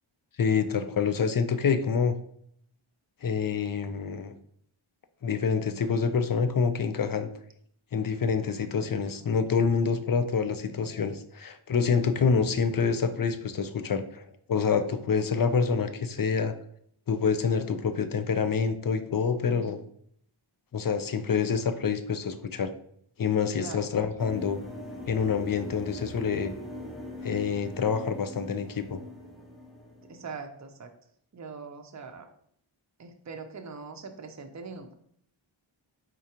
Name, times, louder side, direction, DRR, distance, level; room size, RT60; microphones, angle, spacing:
voice 1, 0.4-2.2 3.2-4.3 5.2-7.3 7.9-16.5 17.1-19.8 20.7-22.7 23.2-24.6 25.1-26.5 27.2-29.0, left 5 dB, 45° left, 10 dB, 0.5 m, -27 dB
voice 2, 19.5-19.8 23.6-23.9 30.1-30.9 31.3-32.3 33.0-34.9, right 4 dB, 35° right, 5 dB, 0.6 m, -42 dB
sound 1, 24.2-30.4, left 1 dB, ahead, 0.7 m, -42 dB
4.7 x 3.8 x 2.8 m, 0.67 s
wide cardioid pair, 55°, 49 cm